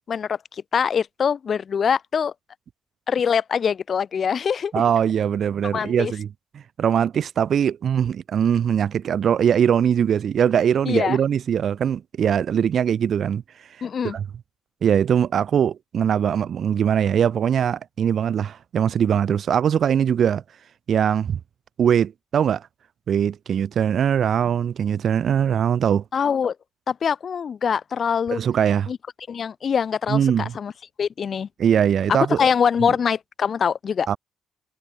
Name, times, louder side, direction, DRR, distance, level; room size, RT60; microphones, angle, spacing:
voice 1, 0.1-2.3 3.1-4.7 5.7-6.1 10.9-11.2 13.8-14.2 26.1-26.5 26.9-28.4 28.9-29.0 29.3-30.7 31.0-31.5 32.3-34.1, left 7 dB, 50° left, 6.5 m, -23 dB
voice 2, 4.7-6.3 6.8-13.4 14.0-14.2 14.8-20.4 20.9-21.4 21.8-22.7 23.1-26.0 28.3-28.9 30.1-30.5 31.6-32.5 32.8-32.9 34.1-34.2, right 8 dB, 60° right, 4.8 m, -21 dB
cardioid pair, 90°, 0 cm